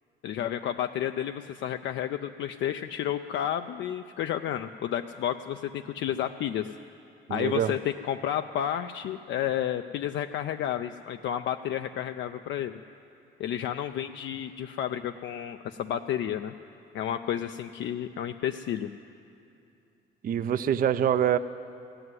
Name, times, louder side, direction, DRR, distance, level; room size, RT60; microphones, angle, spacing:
voice 1, 0.2-6.7 7.3-12.7 13.4-16.5 16.9-18.9, left 10 dB, 70° left, 8 dB, 0.4 m, -31 dB
voice 2, 7.3-7.8 20.2-21.4, right 9 dB, 45° right, 11 dB, 0.4 m, -25 dB
15.5 x 7.8 x 9.6 m, 2.6 s
cardioid pair, 90°, 20 cm